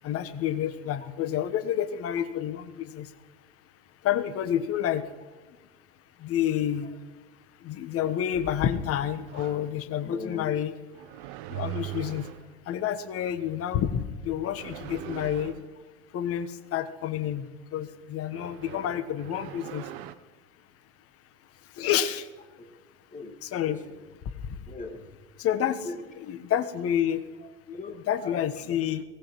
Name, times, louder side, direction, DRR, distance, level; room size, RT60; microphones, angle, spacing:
voice 1, 0.0-3.1 4.0-5.0 6.2-6.9 7.6-10.8 11.5-12.3 12.7-15.5 16.1-19.9 21.8-22.3 23.4-23.8 25.4-25.9 26.3-27.2 28.1-29.0, left 10 dB, 35° left, 11 dB, 1.2 m, -29 dB
sound 1, 9.3-9.7 10.9-12.6 14.4-15.7 18.3-20.1, right 15 dB, 50° right, 0.9 m, -40 dB
voice 2, 10.0-10.6 22.6-22.7 23.1-24.0 24.7-25.2 25.8-26.0 27.4-28.8, left 3 dB, 20° left, 6 dB, 1.9 m, -40 dB
23.0 x 18.0 x 3.1 m, 1.3 s
figure-of-eight pair, 80°, 38 cm